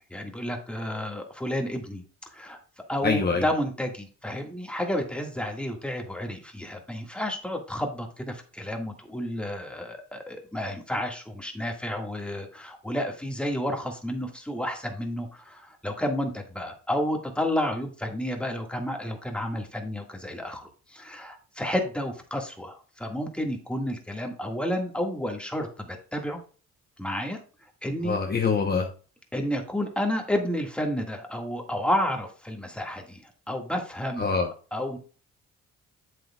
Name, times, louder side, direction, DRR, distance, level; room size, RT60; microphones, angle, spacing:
voice 1, 0.1-2.0 2.3-2.6 2.9-26.4 27.0-27.4 27.8-28.2 29.3-34.4 34.7-35.0, left 1 dB, 5° left, 2 dB, 1.8 m, -31 dB
voice 2, 3.0-3.4 28.0-28.9 34.2-34.5, left 5 dB, 30° left, 2 dB, 1.0 m, -24 dB
8.4 x 7.8 x 2.3 m, 0.37 s
cardioid pair, 90°, 30 cm